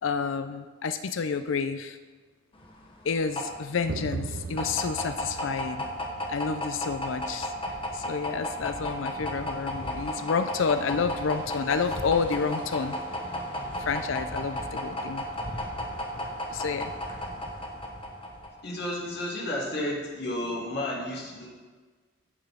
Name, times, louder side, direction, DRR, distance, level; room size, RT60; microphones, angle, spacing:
voice 1, 0.0-2.0 3.0-5.9 6.3-7.5 7.9-12.9 13.8-15.2 16.5-16.9, left 5 dB, 85° left, 10 dB, 0.5 m, -29 dB
sound 1, 2.6-18.6, left 1 dB, 30° left, 1.1 m, -34 dB
sound 2, 3.9-14.4, right 4 dB, 70° right, 0.5 m, -43 dB
voice 2, 18.6-21.5, left 1 dB, 60° left, -4 dB, 2.4 m, -32 dB
15.5 x 5.8 x 3.6 m, 1.4 s
head